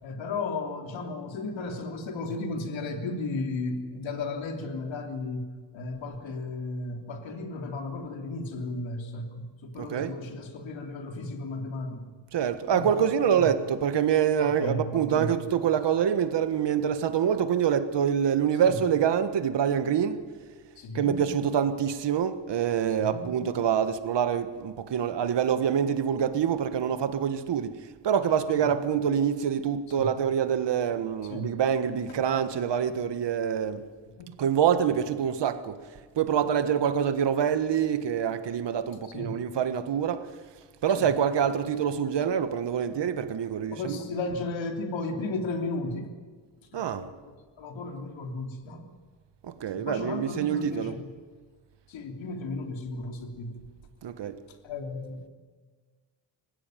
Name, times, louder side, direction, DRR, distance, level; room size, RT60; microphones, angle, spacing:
voice 1, 0.0-5.5 5.7-12.1 12.7-13.5 14.4-15.3 18.6-18.8 20.8-21.1 23.0-23.2 28.6-28.7 29.9-30.1 31.3-31.5 32.1-32.2 34.1-34.4 39.1-39.4 41.0-41.1 43.7-46.1 46.7-47.1 47.6-48.8 49.7-51.1 51.9-53.6 54.6-55.3, left 2 dB, 85° left, 3.4 m, -34 dB
voice 2, 9.8-10.2 12.3-20.2 20.9-27.8 28.0-33.8 34.4-35.8 36.2-40.3 40.8-44.1 46.7-47.1 49.4-51.0 54.0-54.4, right 8 dB, 65° right, 1.7 m, -26 dB
25.5 x 16.0 x 9.3 m
cardioid pair, 105°, 45 cm